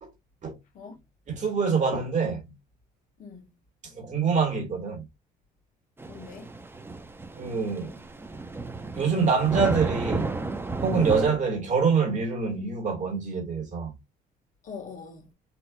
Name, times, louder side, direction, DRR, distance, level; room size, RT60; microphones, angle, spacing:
voice 1, 1.3-2.5 3.8-5.0 7.3-8.0 8.9-10.4 10.8-13.9, right 5 dB, 45° right, 1.8 m, -25 dB
voice 2, 3.2-3.6 6.1-6.5 10.9-11.2 14.6-15.3, left 5 dB, 50° left, 1.2 m, -42 dB
Thunder / Rain, 6.0-11.3, right 3 dB, 15° right, 0.6 m, -33 dB
4.2 x 2.7 x 2.2 m
cardioid pair, 110°, 17 cm